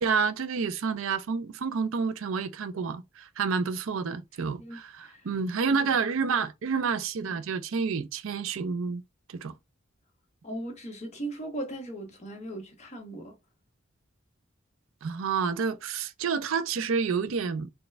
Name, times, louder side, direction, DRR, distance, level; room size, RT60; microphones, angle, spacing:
voice 1, 0.0-9.0 9.3-9.5 15.0-17.7, right 5 dB, 80° right, 0.5 m, -29 dB
voice 2, 4.6-5.3 5.7-5.9 10.4-13.4, right 1 dB, 35° left, 1.2 m, -38 dB
4.1 x 2.2 x 3.3 m
head